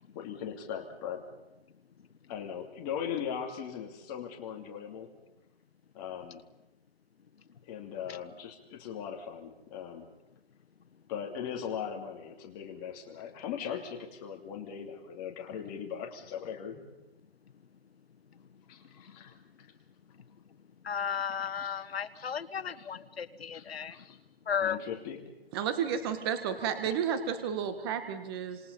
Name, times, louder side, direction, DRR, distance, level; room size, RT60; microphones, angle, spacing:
voice 1, 0.1-1.2 2.3-5.1 5.9-6.4 7.7-10.1 11.1-16.8 18.7-19.3 21.5-21.7 22.1-22.4 22.8-22.9 23.5-24.2 24.6-25.2, left 8 dB, 20° left, 1 dB, 2.8 m, -39 dB
voice 2, 20.8-24.0 24.5-24.8, left 7 dB, 75° left, 13 dB, 1.5 m, -34 dB
voice 3, 25.5-28.6, right 8 dB, 25° right, 9 dB, 1.8 m, -32 dB
29.0 x 27.0 x 5.5 m, 0.95 s
hypercardioid pair, 165°, 31 cm